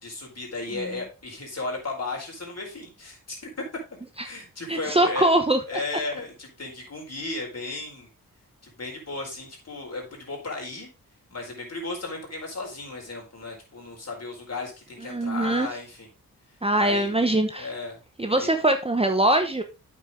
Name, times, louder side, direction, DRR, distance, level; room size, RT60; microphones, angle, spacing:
voice 1, 0.0-3.4 4.2-5.3 5.7-8.1 8.6-10.9 11.3-16.1 16.7-17.1 17.6-18.0 18.3-18.5, left 3 dB, 45° left, 0 dB, 4.3 m, -35 dB
voice 2, 4.7-5.6 5.9-6.0 15.1-15.7 16.6-17.7 18.2-19.6, right 1 dB, 15° right, 6 dB, 0.9 m, -22 dB
8.1 x 6.4 x 3.7 m, 0.30 s
cardioid pair, 65°, 35 cm